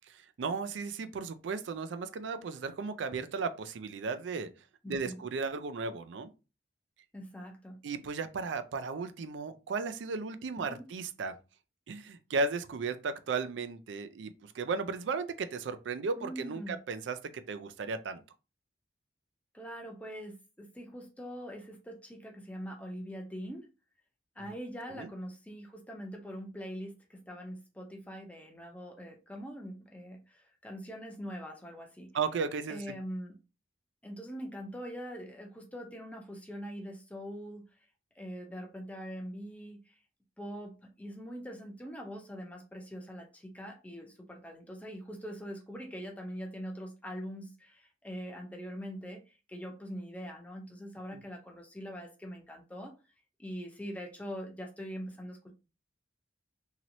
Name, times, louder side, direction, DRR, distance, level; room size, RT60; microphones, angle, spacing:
voice 1, 0.1-4.5 4.9-6.3 7.8-11.4 11.9-18.2 24.9-25.1 32.1-32.9 51.1-51.2, right 4 dB, 85° right, 0.4 m, -35 dB
voice 2, 4.8-5.2 7.1-7.8 10.6-10.9 16.2-16.8 19.5-23.7 24.4-32.1 32.7-33.3 34.0-37.6 38.2-39.9 40.4-49.2 49.5-52.9 53.4-55.5, equal, 10° left, 0.5 m, -43 dB
2.9 x 2.8 x 2.6 m
head